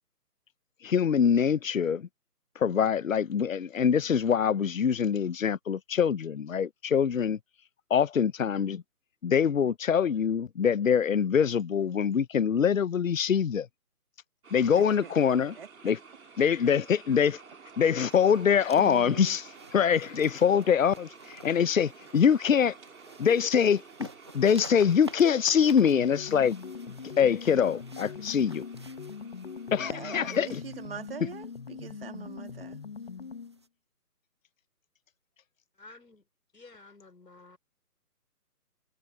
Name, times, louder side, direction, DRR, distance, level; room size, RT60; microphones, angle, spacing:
voice 1, 0.8-2.1 2.6-7.4 7.9-8.8 9.2-13.7 14.5-15.5 15.8-16.0 16.4-17.4 17.8-19.4 19.7-22.7 23.2-24.1 24.3-26.6 26.8-28.6 29.7-30.6, left 7 dB, 55° left, 0.7 m, -24 dB
sound 1, 14.4-31.4, right 5 dB, 60° right, 4.7 m, -52 dB
voice 2, 14.8-15.1 15.6-15.9 17.2-17.3 18.7-19.4 29.8-32.8, right 6 dB, 35° right, 2.3 m, -42 dB
sound 2, 18.1-33.7, right 3 dB, 15° right, 0.9 m, -52 dB
sound 3, 25.9-33.6, left 5 dB, 40° left, 1.1 m, -42 dB
voice 3, 35.8-36.2 36.5-37.6, left 3 dB, 85° left, 4.5 m, -52 dB
hypercardioid pair, 165°, 47 cm